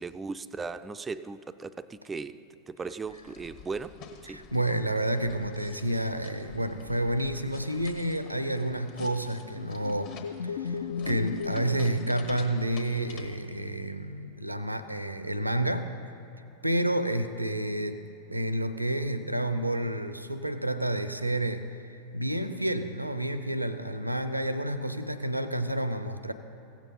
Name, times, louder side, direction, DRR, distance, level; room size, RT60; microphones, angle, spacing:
voice 1, 0.0-2.4 2.7-3.9 4.2-4.4, right 4 dB, 15° right, 13 dB, 0.3 m, -37 dB
sound 1, 3.0-13.3, left 6 dB, 45° left, 1.1 m, -49 dB
voice 2, 4.3-10.1 10.4-15.9 16.6-18.0 18.3-26.3, right 1 dB, 85° right, 11 dB, 0.5 m, -30 dB
sound 2, 9.0-13.0, left 6 dB, 60° left, 0.4 m, -36 dB
16.0 x 7.4 x 5.4 m, 3.0 s
figure-of-eight pair, 90°, 0 cm